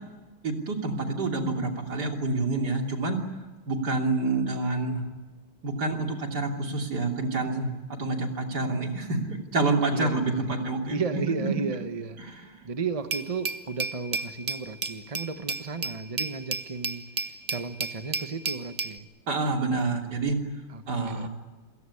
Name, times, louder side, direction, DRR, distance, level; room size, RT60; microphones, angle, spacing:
voice 1, 0.4-3.2 3.7-5.0 5.6-11.2 12.2-12.6 19.3-20.4 20.9-21.3, right 3 dB, 50° right, 2 dB, 3.5 m, -28 dB
voice 2, 9.9-17.0 17.5-19.1 20.7-21.3, right 4 dB, 25° right, 8 dB, 0.8 m, -34 dB
Glass, 13.1-19.0, right 4 dB, 85° right, 0.3 m, -33 dB
28.0 x 17.0 x 9.9 m, 1.3 s
omnidirectional pair, 2.3 m